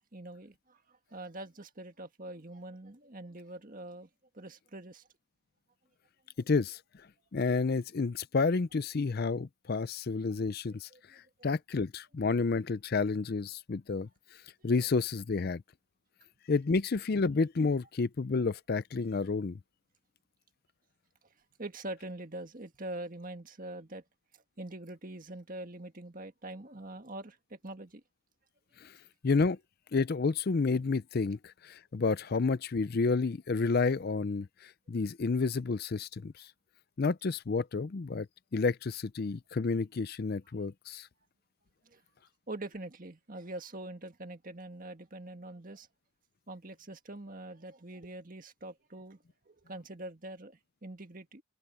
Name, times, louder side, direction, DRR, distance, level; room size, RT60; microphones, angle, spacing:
voice 1, 0.1-4.1 4.3-5.0 10.7-11.2 21.6-24.0 24.6-28.0 41.9-42.0 42.5-45.9 46.5-49.2 49.5-51.4, right 1 dB, 40° right, 1.8 m, -44 dB
voice 2, 6.5-6.8 7.3-14.1 14.6-15.6 16.5-19.6 28.8-28.9 29.2-29.6 29.9-36.5 37.0-38.3 38.5-41.1, left 4 dB, 45° left, 0.5 m, -30 dB
head